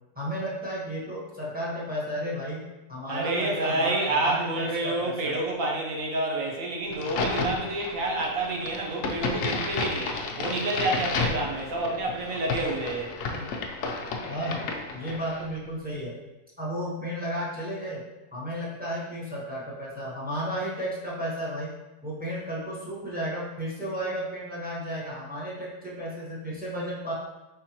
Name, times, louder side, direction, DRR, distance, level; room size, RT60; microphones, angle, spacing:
voice 1, 0.1-2.6 2.9-5.4 14.3-16.1 16.6-18.0 18.3-21.7 22.0-27.1, equal, 10° right, -7 dB, 0.5 m, -33 dB
voice 2, 3.1-13.5, right 2 dB, 60° right, -1 dB, 1.0 m, -29 dB
Crack, 6.9-15.5, left 3 dB, 90° left, 0.7 m, -32 dB
4.8 x 3.8 x 2.9 m, 1.1 s
omnidirectional pair, 2.0 m